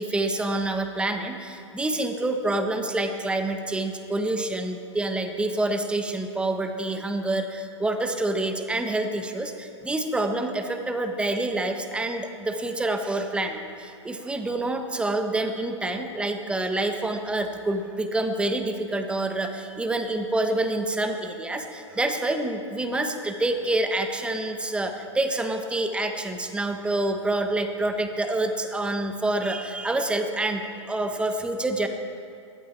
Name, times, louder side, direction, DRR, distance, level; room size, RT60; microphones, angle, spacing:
voice 1, 0.0-31.9, right 2 dB, 5° right, 5 dB, 1.3 m, -27 dB
20.0 x 15.0 x 4.4 m, 2.5 s
hypercardioid pair, 120°, 16 cm